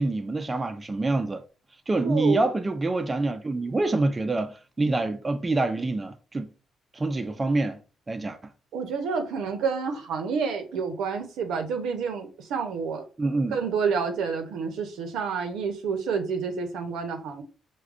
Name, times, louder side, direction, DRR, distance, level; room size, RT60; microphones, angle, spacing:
voice 1, 0.0-1.4 1.9-6.5 6.9-7.8 8.1-8.4 13.2-13.6, right 2 dB, 25° right, 0.4 m, -26 dB
voice 2, 2.0-2.4 8.7-13.0 13.5-17.4, right 5 dB, 85° right, 0.6 m, -29 dB
4.7 x 2.2 x 2.4 m
cardioid pair, 90°, 0 cm